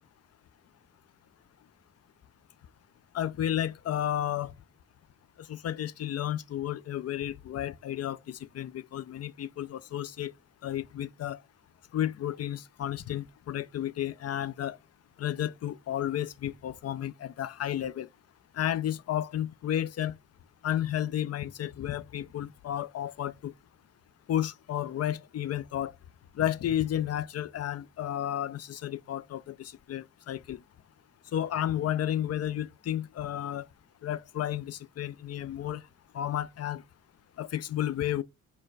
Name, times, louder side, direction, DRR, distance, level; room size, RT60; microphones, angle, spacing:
voice 1, 3.1-4.5 5.5-10.3 10.6-11.4 11.9-14.8 15.2-18.1 18.5-20.2 20.6-23.5 24.3-25.9 26.4-30.6 31.3-33.6 34.0-35.8 36.1-36.8 37.4-38.2, left 11 dB, 50° left, 0.4 m, -32 dB
4.4 x 2.2 x 4.5 m
cardioid pair, 110°, 32 cm